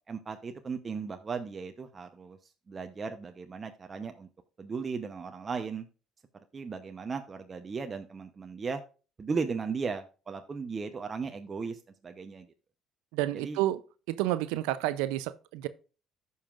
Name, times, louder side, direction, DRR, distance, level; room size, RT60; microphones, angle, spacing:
voice 1, 0.1-2.4 2.7-4.3 4.6-5.9 6.5-8.8 9.2-12.5 13.4-13.6, right 5 dB, 35° right, 0.8 m, -36 dB
voice 2, 13.1-13.8 14.1-15.7, right 15 dB, 90° right, 0.5 m, -30 dB
14.5 x 5.6 x 2.4 m
supercardioid pair, 75°, 0 cm